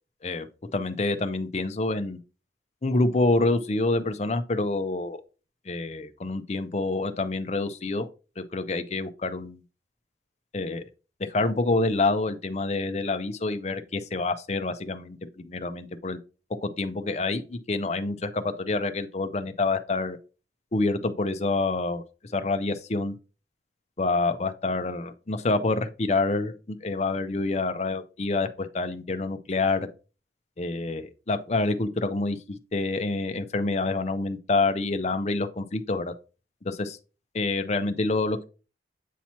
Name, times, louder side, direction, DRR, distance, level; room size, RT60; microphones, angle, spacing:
voice 1, 0.7-2.2 2.8-5.2 5.7-8.1 8.4-9.6 10.5-10.8 11.3-16.2 16.6-20.2 20.7-22.0 22.3-23.1 24.0-29.9 30.6-32.4 32.7-36.1 36.6-37.0 37.3-38.4, left 3 dB, 35° left, 0.5 m, -27 dB
8.2 x 2.9 x 4.3 m
head